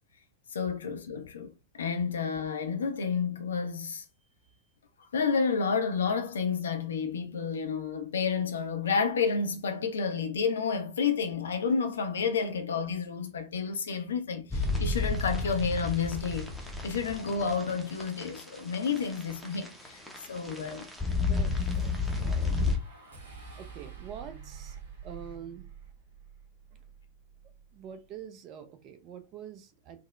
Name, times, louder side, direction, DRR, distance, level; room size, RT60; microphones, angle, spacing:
voice 1, 0.5-4.1 5.1-16.5 16.8-20.0 20.3-20.9, left 5 dB, 65° left, 0.4 m, -30 dB
sound 1, 14.5-22.8, left 4 dB, 5° left, 0.7 m, -31 dB
voice 2, 20.4-20.8 21.3-22.8 23.6-24.8 25.0-25.7 27.7-30.0, right 8 dB, 40° right, 0.5 m, -46 dB
sound 2, 21.5-27.9, right 6 dB, 65° right, 0.9 m, -48 dB
3.6 x 2.0 x 2.2 m
figure-of-eight pair, 90°, 0 cm